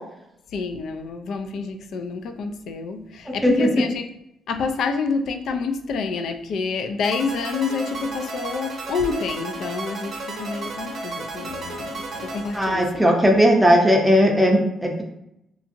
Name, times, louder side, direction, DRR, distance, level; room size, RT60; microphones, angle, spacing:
voice 1, 0.5-4.1 4.5-13.3, left 4 dB, 70° left, 6 dB, 0.3 m, -28 dB
sound 1, 7.0-13.3, right 2 dB, 60° right, 0.7 m, -33 dB
voice 2, 12.5-15.0, equal, 5° right, 0 dB, 0.5 m, -17 dB
2.8 x 2.5 x 2.5 m, 0.83 s
cardioid pair, 90°, 0 cm